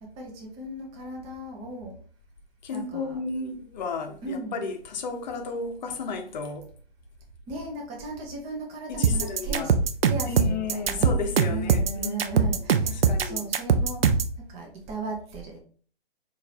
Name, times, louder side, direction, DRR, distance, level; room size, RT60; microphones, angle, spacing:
voice 1, 0.0-1.9 2.7-3.1 4.2-4.6 7.5-9.7 10.0-11.2 11.5-14.1 14.5-15.6, right 2 dB, 20° right, 0.8 m, -36 dB
voice 2, 2.6-6.7 8.3-8.4 8.9-9.7 10.3-12.4 12.8-13.4, left 4 dB, 50° left, 0.8 m, -33 dB
sound 1, 9.0-14.3, right 6 dB, 75° right, 0.5 m, -22 dB
4.1 x 2.6 x 2.7 m
figure-of-eight pair, 125°, 30 cm